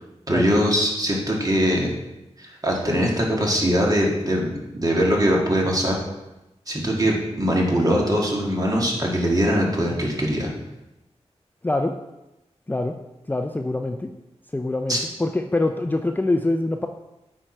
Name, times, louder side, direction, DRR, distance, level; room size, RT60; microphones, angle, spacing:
voice 1, 0.3-1.9 2.4-6.0 6.7-10.5 14.9-15.0, equal, 30° right, -2 dB, 1.8 m, -22 dB
voice 2, 11.6-11.9 12.7-13.0 13.3-14.1 14.5-16.9, left 2 dB, 15° left, 5 dB, 0.4 m, -24 dB
8.9 x 4.6 x 4.4 m, 0.96 s
wide cardioid pair, 80°, 12 cm